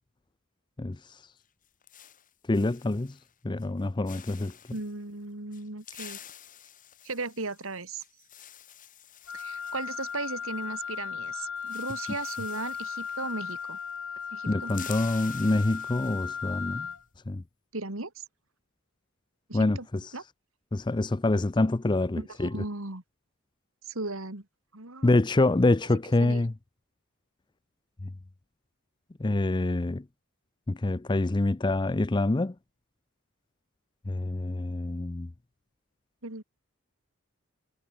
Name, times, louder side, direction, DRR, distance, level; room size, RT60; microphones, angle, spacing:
sound 1, 1.4-3.3 3.6-3.8 4.1-4.9 5.5-11.0 11.2-11.3 11.6-14.0 14.2-16.6, left 10 dB, 40° left, 3.1 m, -49 dB
voice 1, 2.5-3.2 3.4-4.5 14.5-16.9 17.3-17.4 19.5-20.1 20.7-22.5 25.0-26.5 29.2-30.0 30.7-32.5 34.1-35.3, left 2 dB, 20° left, 0.5 m, -26 dB
voice 2, 4.7-6.2 7.0-8.0 9.3-13.8 14.3-14.7 17.7-18.2 19.5-19.9 20.1-20.2 22.2-23.0 23.8-24.4 24.7-25.2 26.2-26.4 36.2-36.4, right 3 dB, 70° right, 2.7 m, -36 dB
Wind instrument woodwind instrument, 9.3-17.0, left 6 dB, 65° left, 1.5 m, -36 dB
head